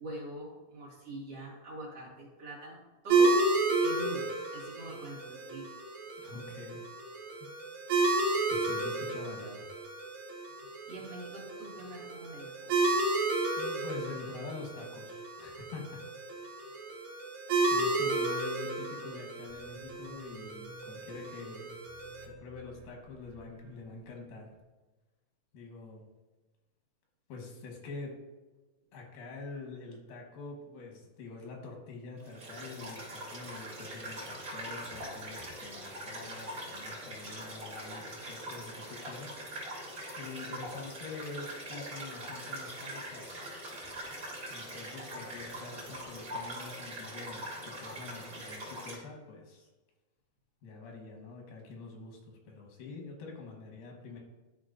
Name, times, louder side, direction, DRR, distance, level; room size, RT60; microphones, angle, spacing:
voice 1, 0.0-3.4 3.8-5.7 10.9-12.8 16.6-16.7, right 1 dB, 50° right, -6 dB, 2.7 m, -44 dB
sound 1, 3.1-22.2, right 3 dB, 90° right, 3.0 m, -32 dB
voice 2, 6.2-6.8 7.3-7.4 8.5-9.7 13.6-16.0 17.7-21.7 22.3-24.5 25.5-26.1 27.3-28.1 28.9-39.4 39.6-39.9 40.2-43.4 44.5-49.7 50.6-54.2, left 3 dB, 90° left, 0 dB, 3.0 m, -45 dB
sound 2, 19.5-24.6, right 1 dB, 75° right, 2.4 m, -56 dB
sound 3, 32.2-49.0, right 1 dB, 30° right, 2.1 m, -42 dB
12.0 x 4.6 x 2.5 m, 1.1 s
omnidirectional pair, 3.9 m